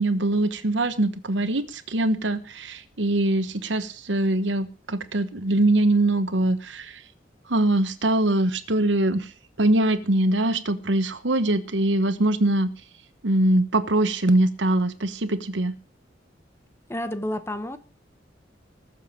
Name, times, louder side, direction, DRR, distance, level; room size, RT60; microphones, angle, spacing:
voice 1, 0.0-7.0 7.5-9.3 9.6-12.7 13.2-15.7, right 1 dB, 70° right, 12 dB, 1.2 m, -23 dB
voice 2, 16.9-17.8, left 1 dB, 15° left, 11 dB, 1.1 m, -30 dB
20.5 x 7.2 x 5.1 m, 0.35 s
head